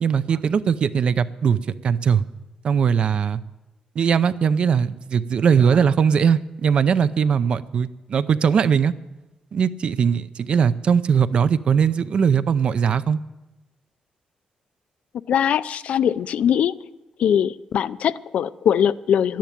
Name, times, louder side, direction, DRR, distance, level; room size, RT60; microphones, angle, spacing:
voice 1, 0.0-2.2 2.6-3.4 4.0-8.9 9.5-13.2, right 7 dB, 50° right, 14 dB, 0.5 m, -20 dB
voice 2, 15.3-16.7 17.2-19.4, left 9 dB, 70° left, 15 dB, 0.4 m, -21 dB
12.0 x 10.5 x 9.0 m, 1.1 s
wide cardioid pair, 165°, 2 cm